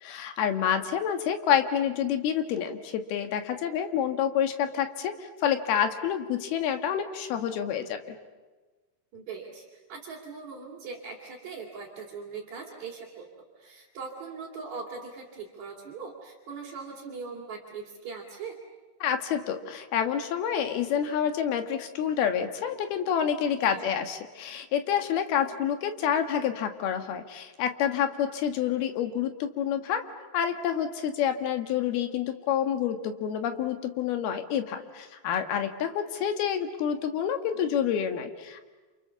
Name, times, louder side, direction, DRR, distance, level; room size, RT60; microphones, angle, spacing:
voice 1, 0.0-5.2 5.4-8.2 19.0-30.0 30.3-38.6, left 8 dB, 75° left, 7 dB, 3.5 m, -28 dB
voice 2, 9.1-13.3 13.6-18.6 23.6-23.9, right 5 dB, 50° right, -3 dB, 4.0 m, -41 dB
28.5 x 28.5 x 7.1 m, 1.3 s
omnidirectional pair, 4.5 m